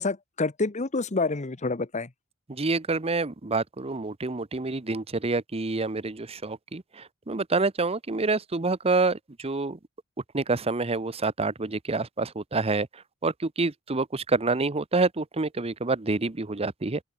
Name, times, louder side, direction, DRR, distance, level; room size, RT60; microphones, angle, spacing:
voice 1, 0.0-2.1, left 3 dB, 35° left, 1.0 m, -28 dB
voice 2, 2.5-6.8 7.3-9.8 10.3-12.9 13.2-13.3 13.6-17.0, right 3 dB, 30° right, 0.9 m, -27 dB
open air
head